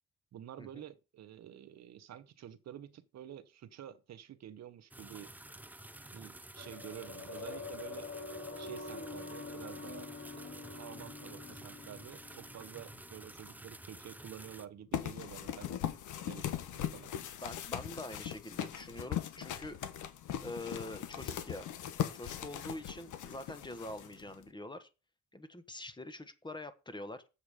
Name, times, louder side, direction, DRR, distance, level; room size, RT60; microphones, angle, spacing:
voice 1, 0.3-5.3 6.1-8.1 8.6-15.8 16.2-17.1, right 10 dB, 60° right, 0.8 m, -50 dB
sound 1, 4.9-14.7, right 1 dB, 5° right, 0.6 m, -51 dB
sound 2, 6.6-15.2 15.5-15.6, left 4 dB, 50° left, 5.8 m, -47 dB
sound 3, 14.9-24.4, left 10 dB, 80° left, 1.1 m, -39 dB
voice 2, 17.4-19.8 20.4-21.7 22.1-24.9 25.3-27.3, left 2 dB, 15° left, 1.3 m, -45 dB
7.6 x 6.8 x 4.9 m
cardioid pair, 90°, 30 cm